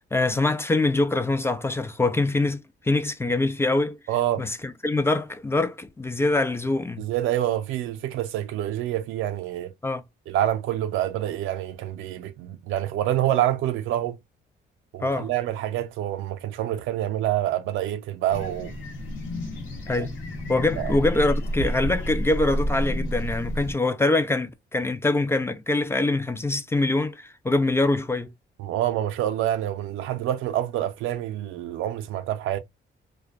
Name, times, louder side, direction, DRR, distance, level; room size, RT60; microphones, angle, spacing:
voice 1, 0.1-4.0 4.4-7.1 9.8-10.0 15.0-15.3 19.9-20.2 20.5-28.3, left 2 dB, 10° left, 0.3 m, -24 dB
voice 2, 4.1-4.5 7.0-9.7 10.3-14.2 14.9-18.8 19.9-20.1 20.8-20.9 28.6-32.6, right 12 dB, 90° right, 0.4 m, -27 dB
sound 1, 18.3-23.7, equal, 90° left, 0.9 m, -30 dB
2.5 x 2.2 x 2.3 m
cardioid pair, 90°, 20 cm